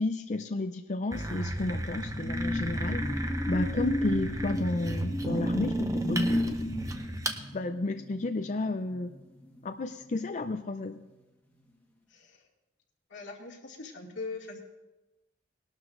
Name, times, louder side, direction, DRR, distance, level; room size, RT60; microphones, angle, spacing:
voice 1, 0.0-3.1 3.5-6.7 7.5-9.1 9.6-11.0, left 2 dB, 40° left, 7 dB, 0.5 m, -32 dB
sound 1, 1.1-7.4, right 1 dB, 20° right, 0.8 m, -33 dB
sound 2, 1.3-10.3 10.6-10.9, left 1 dB, 10° left, 1.4 m, -35 dB
voice 2, 13.1-14.6, left 3 dB, 90° left, -1 dB, 2.3 m, -41 dB
20.0 x 12.0 x 2.5 m, 1.0 s
head